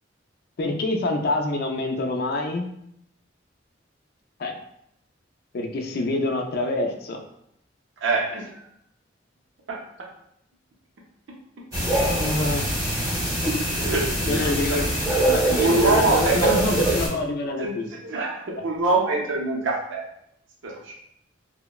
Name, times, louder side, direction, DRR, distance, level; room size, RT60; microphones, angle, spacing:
voice 1, 0.6-2.7 4.4-4.6 5.5-7.2 12.0-12.8 14.3-14.9 15.2-17.9, left 2 dB, 55° left, 3 dB, 0.3 m, -26 dB
voice 2, 8.0-8.6 9.7-9.8 13.7-14.8 15.6-16.6 17.6-17.7 18.0-20.0 20.6-20.9, right 2 dB, 80° right, -1 dB, 0.5 m, -24 dB
sound 1, 11.7-17.1, right 1 dB, 15° right, 0.8 m, -24 dB
2.8 x 2.0 x 2.2 m, 0.75 s
head